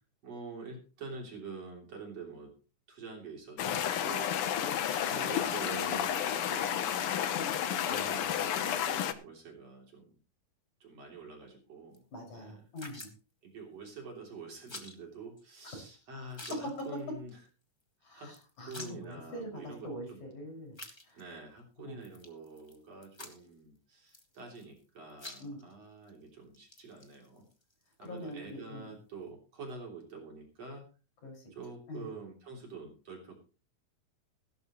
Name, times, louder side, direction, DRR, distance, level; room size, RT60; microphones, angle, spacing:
voice 1, 0.2-2.5 2.9-4.4 5.0-7.1 7.8-10.1 10.8-12.1 12.3-12.6 13.4-17.4 18.1-18.3 18.6-20.2 21.1-27.5 28.0-30.9 31.5-33.4, right 4 dB, 50° right, 1 dB, 4.2 m, -46 dB
sound 1, 3.6-9.1, left 9 dB, 90° left, 1.2 m, -31 dB
sound 2, 11.9-12.0 12.8-13.2 14.7-15.0 15.4-15.5 15.7-15.8 16.3-17.0 17.3-17.5 17.8-17.9 18.3-19.1 19.8-19.9 20.7-21.4 22.0-22.8 23.0-23.6 24.1-24.8 25.1-25.7 26.1-26.2 26.5-28.5, left 2 dB, 20° left, 0.7 m, -48 dB
voice 2, 12.1-13.1 15.6-15.9 18.0-20.8 21.1-21.2 21.9-22.1 25.4-25.6 28.0-28.9 31.2-31.4 31.9-32.1, left 1 dB, 60° left, 1 dB, 7.2 m, -44 dB
16.5 x 13.0 x 3.1 m, 0.34 s
omnidirectional pair, 3.8 m